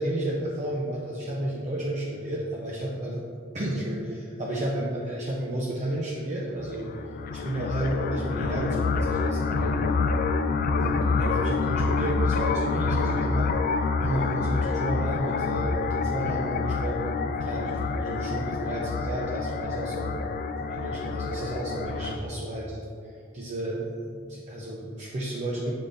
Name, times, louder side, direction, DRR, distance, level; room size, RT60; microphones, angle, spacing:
voice 1, 0.0-3.2 3.5-6.9 7.3-10.0 10.8-20.1 20.6-22.8 23.0-25.7, right 1 dB, 35° right, -4 dB, 0.6 m, -32 dB
sound 1, 6.6-22.2, left 4 dB, 45° left, 0.3 m, -27 dB
6.7 x 3.7 x 3.9 m, 2.4 s
head